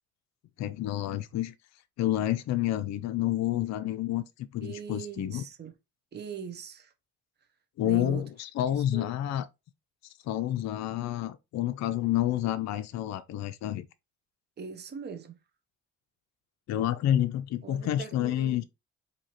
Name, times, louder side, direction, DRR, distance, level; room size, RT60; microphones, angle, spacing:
voice 1, 0.6-1.5 2.0-5.4 7.8-9.5 10.2-13.9 16.7-18.6, left 12 dB, 65° left, 0.4 m, -29 dB
voice 2, 4.6-5.7 6.1-6.9 7.8-8.3 8.7-9.1 14.6-15.4 17.6-18.6, right 6 dB, 35° right, 0.7 m, -41 dB
4.4 x 2.8 x 2.9 m
cardioid pair, 90°, 30 cm